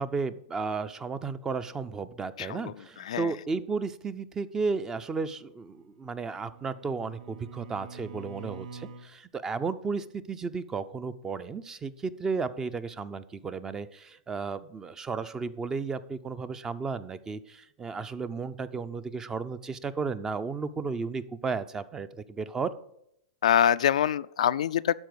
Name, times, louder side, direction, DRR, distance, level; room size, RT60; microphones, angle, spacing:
voice 1, 0.0-22.7, right 4 dB, 15° right, 15 dB, 0.5 m, -33 dB
voice 2, 2.4-3.3 23.4-24.9, left 10 dB, 80° left, 14 dB, 0.4 m, -25 dB
Bowed string instrument, 5.7-9.1, right 5 dB, 85° right, 1.2 m, -46 dB
12.0 x 4.6 x 7.8 m, 0.76 s
hypercardioid pair, 135°, 4 cm